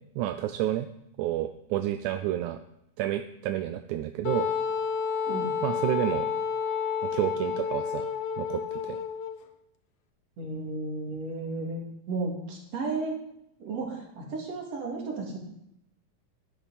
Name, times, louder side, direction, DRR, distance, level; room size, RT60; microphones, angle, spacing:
voice 1, 0.2-0.9 1.2-2.6 3.0-4.5 5.6-6.3 7.0-8.1 8.4-9.0, right 13 dB, 80° right, 9 dB, 1.9 m, -30 dB
Wind instrument woodwind instrument, 4.3-9.4, left 6 dB, 80° left, 1.4 m, -30 dB
voice 2, 10.4-11.8 12.1-13.2 13.6-15.4, right 3 dB, 50° right, 0 dB, 3.5 m, -33 dB
11.5 x 11.0 x 4.2 m, 0.79 s
omnidirectional pair, 3.7 m